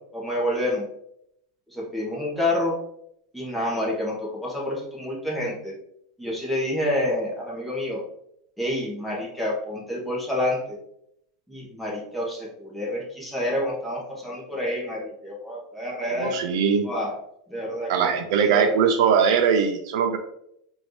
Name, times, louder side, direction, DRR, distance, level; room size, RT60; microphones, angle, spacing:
voice 1, 0.1-0.8 1.7-2.7 3.3-5.7 6.2-8.0 8.6-10.8 11.5-16.4 16.8-17.2 17.5-18.1 18.5-18.8, left 1 dB, ahead, -5 dB, 1.2 m, -28 dB
voice 2, 16.1-16.8 17.9-20.2, right 6 dB, 65° right, 6 dB, 0.4 m, -21 dB
4.2 x 2.7 x 3.1 m, 0.74 s
supercardioid pair, 140°, 3 cm